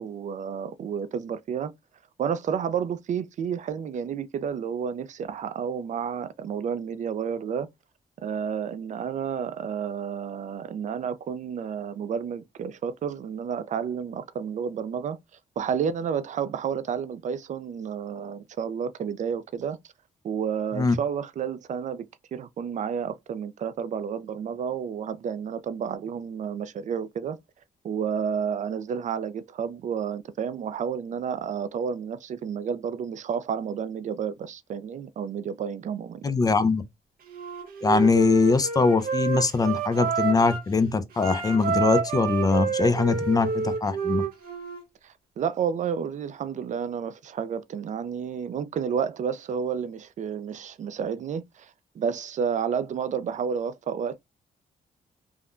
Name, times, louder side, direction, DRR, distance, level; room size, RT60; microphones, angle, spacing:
voice 1, 0.0-1.7 2.2-7.7 8.2-15.2 15.6-19.8 20.2-22.1 22.3-27.4 27.8-36.3 45.0-51.7 52.0-54.2, right 7 dB, 55° right, 0.4 m, -31 dB
voice 2, 36.2-36.8 37.8-44.2, left 4 dB, 25° left, 0.5 m, -22 dB
Wind instrument woodwind instrument, 37.3-40.7 41.1-44.8, right 5 dB, 80° right, 0.9 m, -29 dB
3.5 x 2.1 x 2.4 m
cardioid pair, 90°, 15 cm